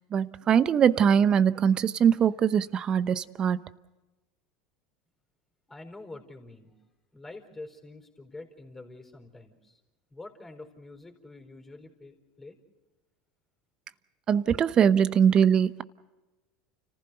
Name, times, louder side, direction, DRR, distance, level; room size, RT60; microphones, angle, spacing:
voice 1, 0.1-3.6 14.3-15.8, right 8 dB, 35° right, 17 dB, 0.8 m, -22 dB
voice 2, 5.7-6.8 7.1-9.8 10.1-12.6, left 2 dB, 15° left, 4 dB, 4.5 m, -46 dB
29.5 x 15.0 x 6.8 m, 1.1 s
hypercardioid pair, 90°, 2 cm